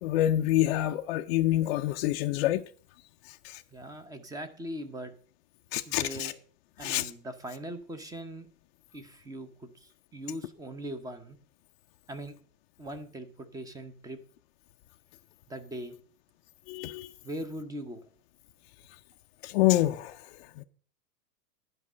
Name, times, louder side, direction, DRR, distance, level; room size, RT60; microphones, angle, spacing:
voice 1, 0.0-2.7 3.2-3.6 5.7-6.3 6.8-7.1 16.7-17.1 19.4-20.6, left 14 dB, 40° left, 0.5 m, -27 dB
voice 2, 3.7-5.1 5.9-6.3 6.8-8.5 8.9-11.4 12.1-12.4 12.8-14.2 15.5-16.0 17.2-18.0, right 1 dB, 5° right, 0.8 m, -40 dB
11.0 x 5.4 x 7.4 m
hypercardioid pair, 135°, 49 cm